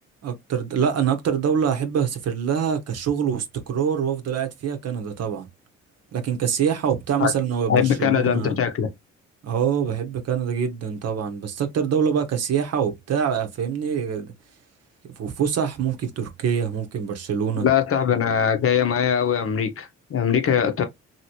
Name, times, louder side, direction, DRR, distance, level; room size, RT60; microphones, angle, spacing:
voice 1, 0.2-5.5 6.1-8.6 9.4-14.3 15.2-17.7, right 7 dB, 55° right, 0.9 m, -25 dB
voice 2, 7.7-8.9 17.6-20.8, left 8 dB, 45° left, 0.8 m, -21 dB
2.8 x 2.8 x 2.9 m
supercardioid pair, 75°, 31 cm